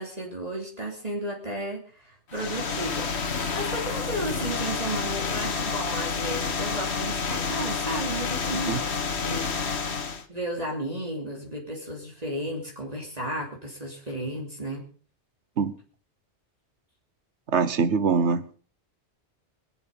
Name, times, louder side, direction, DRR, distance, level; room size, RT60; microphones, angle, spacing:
voice 1, 0.0-9.9 10.3-14.8, right 1 dB, 35° right, -1 dB, 3.1 m, -34 dB
sound 1, 2.3-10.3, left 5 dB, 70° left, 1.5 m, -29 dB
voice 2, 17.5-18.4, right 5 dB, 85° right, 13 dB, 1.4 m, -23 dB
24.0 x 8.0 x 5.3 m, 0.41 s
omnidirectional pair, 1.1 m